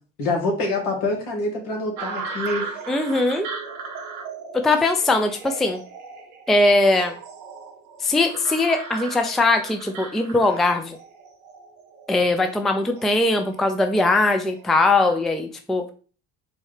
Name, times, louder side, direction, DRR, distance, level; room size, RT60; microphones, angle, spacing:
voice 1, 0.2-2.6, left 2 dB, 70° left, 0 dB, 1.5 m, -25 dB
sound 1, 2.0-15.2, right 5 dB, 80° right, 1.1 m, -37 dB
voice 2, 2.9-3.5 4.5-5.8 6.5-7.2 8.0-11.0 12.1-15.8, left 2 dB, ahead, 6 dB, 0.4 m, -20 dB
4.2 x 2.3 x 3.2 m, 0.38 s
hypercardioid pair, 55°, 44 cm